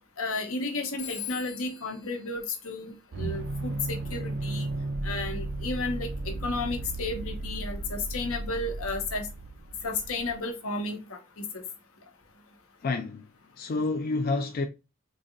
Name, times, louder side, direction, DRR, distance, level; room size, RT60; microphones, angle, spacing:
voice 1, 0.2-4.7 5.0-6.1 6.4-9.3 9.8-11.2 11.5-11.6, left 3 dB, 80° left, 0.9 m, -33 dB
Telephone, 1.0-3.5, left 11 dB, 60° left, 1.1 m, -43 dB
sound 1, 3.1-10.3, right 2 dB, 55° right, 0.5 m, -35 dB
voice 2, 12.8-13.3 13.6-14.7, left 3 dB, 45° left, 0.3 m, -28 dB
3.8 x 2.8 x 2.5 m
head